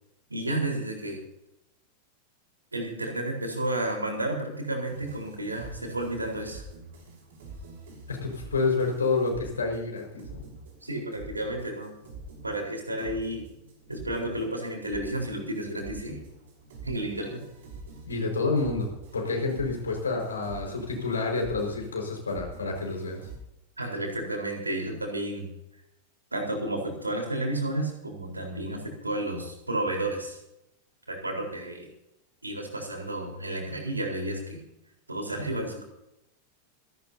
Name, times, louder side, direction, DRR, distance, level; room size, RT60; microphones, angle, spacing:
voice 1, 0.3-1.2 2.7-6.6 10.8-11.9 12.4-13.5 13.9-16.2 16.8-17.4 23.8-25.5 26.3-30.4 31.1-31.9 32.4-34.6 35.1-35.8, right 1 dB, 80° right, 1 dB, 4.1 m, -32 dB
sound 1, 4.8-23.4, right 2 dB, 60° right, 5.5 m, -46 dB
voice 2, 8.1-10.4 18.0-23.2, left 3 dB, 75° left, 2 dB, 5.0 m, -29 dB
26.0 x 12.0 x 2.8 m, 0.82 s
figure-of-eight pair, 90°, 0 cm